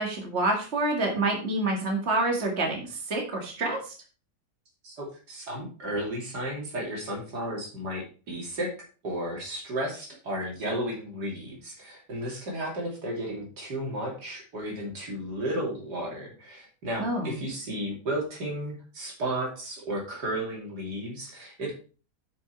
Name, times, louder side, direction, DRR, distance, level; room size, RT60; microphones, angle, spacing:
voice 1, 0.0-3.8 17.0-17.4, right 2 dB, 40° right, 1 dB, 2.4 m, -27 dB
voice 2, 4.8-8.7 9.0-21.7, right 1 dB, 85° right, -1 dB, 3.4 m, -33 dB
9.4 x 6.0 x 4.5 m, 0.37 s
omnidirectional pair, 1.7 m